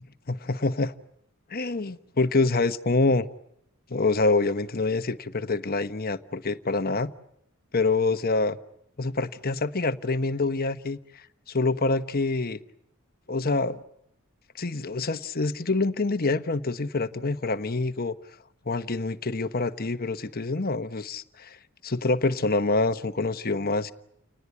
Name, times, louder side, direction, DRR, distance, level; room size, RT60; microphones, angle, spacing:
voice 1, 0.3-0.9 1.5-3.3 3.9-7.1 7.7-8.6 9.0-12.6 13.3-13.8 14.6-18.2 18.7-21.6 21.8-23.9, left 3 dB, 45° left, 1.1 m, -26 dB
29.5 x 19.5 x 9.8 m
head